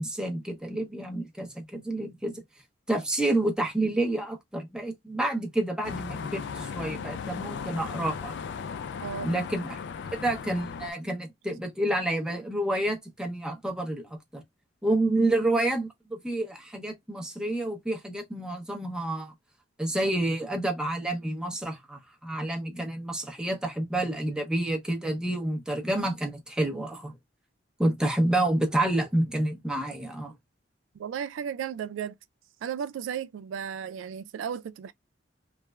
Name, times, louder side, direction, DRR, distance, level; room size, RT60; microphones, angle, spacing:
voice 1, 0.0-2.4 2.9-8.3 9.2-9.8 10.1-14.4 14.8-19.3 19.8-27.1 27.8-30.3, right 1 dB, 5° right, 0.6 m, -29 dB
sound 1, 5.8-10.9, left 6 dB, 65° left, 0.3 m, -36 dB
voice 2, 9.0-9.4 15.2-15.3 30.9-32.1 32.6-34.9, right 8 dB, 90° right, 0.3 m, -34 dB
3.2 x 2.1 x 2.2 m
head